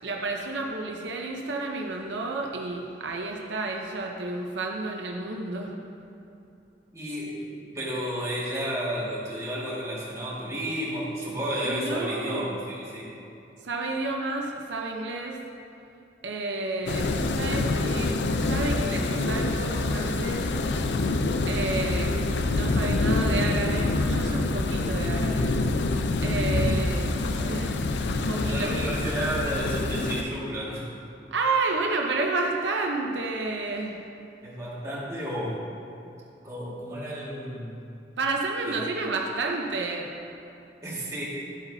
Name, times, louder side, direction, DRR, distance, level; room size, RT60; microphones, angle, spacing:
voice 1, 0.0-5.8 11.6-12.6 13.6-15.4 16.2-20.5 21.5-25.5 26.2-27.2 27.5-27.8 28.1-28.8 31.3-34.0 38.2-40.1, right 3 dB, 90° right, 1 dB, 0.8 m, -31 dB
voice 2, 6.9-13.1 27.3-27.6 28.4-30.9 34.4-35.6 36.4-37.8 38.6-39.1 40.8-41.3, equal, 20° right, -7 dB, 2.0 m, -32 dB
sound 1, 16.9-30.2, left 2 dB, 75° left, 0.5 m, -26 dB
12.0 x 8.1 x 2.8 m, 2.7 s
head